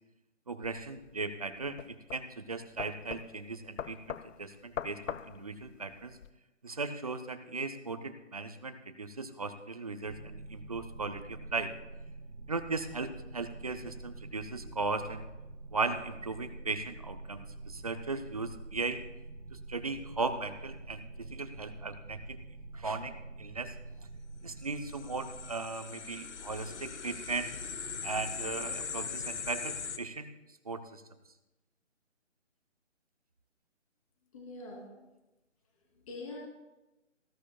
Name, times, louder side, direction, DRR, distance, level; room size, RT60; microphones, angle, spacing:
voice 1, 0.5-6.2 6.6-11.7 12.5-15.3 15.7-19.0 19.5-22.4 22.7-23.1 23.4-23.7 24.4-27.5 28.0-30.3 30.7-31.0, right 3 dB, 30° right, 9 dB, 0.6 m, -37 dB
sound 1, 0.6-6.3, left 8 dB, 80° left, 0.6 m, -43 dB
sound 2, 10.0-25.6, right 2 dB, 55° right, 2.8 m, -47 dB
sound 3, 24.6-30.0, left 6 dB, 65° left, 1.1 m, -40 dB
voice 2, 34.3-35.1 35.9-36.4, left 2 dB, 30° left, -2 dB, 2.9 m, -44 dB
18.5 x 12.5 x 2.3 m, 1.0 s
figure-of-eight pair, 160°, 38 cm